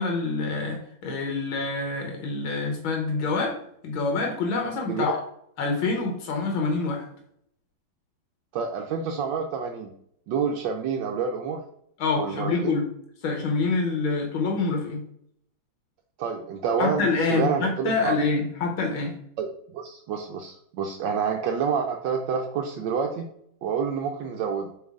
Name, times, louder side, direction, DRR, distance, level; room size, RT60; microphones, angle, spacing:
voice 1, 0.0-3.6 3.8-5.2 5.6-7.1 12.0-12.9 13.2-15.1 16.8-19.1, left 4 dB, 85° left, 1 dB, 1.9 m, -26 dB
voice 2, 8.5-9.9 10.3-11.6 12.2-12.8 16.2-18.2 19.4-23.3 23.6-24.7, right 6 dB, 75° right, 3 dB, 1.3 m, -28 dB
7.3 x 3.9 x 3.6 m, 0.70 s
omnidirectional pair, 2.1 m